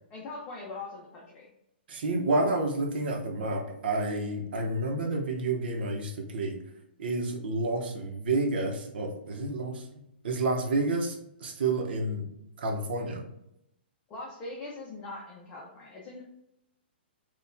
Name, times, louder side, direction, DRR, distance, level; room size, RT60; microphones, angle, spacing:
voice 1, 0.1-1.5 14.1-16.2, left 3 dB, 20° left, -4 dB, 0.7 m, -41 dB
voice 2, 1.9-6.6 7.0-9.9 10.2-12.3 12.6-13.2, right 2 dB, 65° right, 2 dB, 0.9 m, -29 dB
4.3 x 2.4 x 3.4 m, 0.80 s
hypercardioid pair, 150°, 6 cm